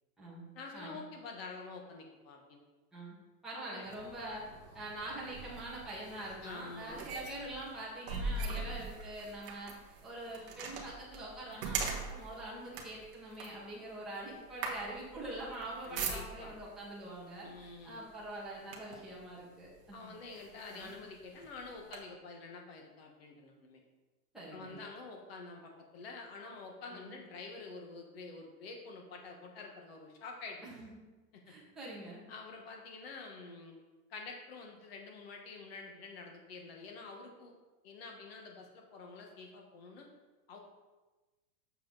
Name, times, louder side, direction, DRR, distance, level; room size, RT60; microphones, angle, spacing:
voice 1, 0.5-2.6 3.7-3.8 6.4-7.0 15.8-16.5 17.4-18.0 19.9-23.8 24.5-30.6 31.3-31.5 32.3-33.7 34.1-37.5 37.8-40.1 40.5-40.6, left 4 dB, 40° left, 2 dB, 1.3 m, -48 dB
voice 2, 3.4-4.4 4.7-9.7 10.0-20.2 20.7-21.0 24.3-24.8 26.9-27.1 30.6-31.0 31.4-32.2, right 1 dB, ahead, -9 dB, 1.4 m, -44 dB
sound 1, 3.8-16.7 17.5-17.7 18.1-19.1 19.8-19.9 20.3-22.0, right 4 dB, 35° right, 1.1 m, -42 dB
7.8 x 6.9 x 3.9 m, 1.2 s
supercardioid pair, 180°, 47 cm